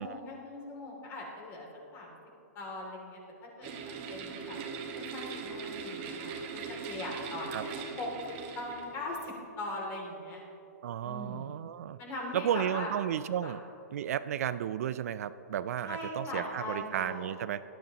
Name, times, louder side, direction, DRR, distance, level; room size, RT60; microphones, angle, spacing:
voice 1, 0.0-1.7 1.9-2.1 2.5-3.7 4.1-4.6 4.9-7.7 8.0-8.1 8.5-10.4 11.0-11.6 12.0-12.9 13.4-13.5 15.8-17.3, left 2 dB, 25° left, -1 dB, 2.8 m, -40 dB
sound 1, 3.6-9.2, right 5 dB, 35° right, 1.4 m, -40 dB
voice 2, 10.8-12.0 12.3-13.6 13.9-17.6, right 10 dB, 60° right, 14 dB, 0.4 m, -33 dB
19.0 x 12.5 x 3.0 m, 2.8 s
hypercardioid pair, 155°, 9 cm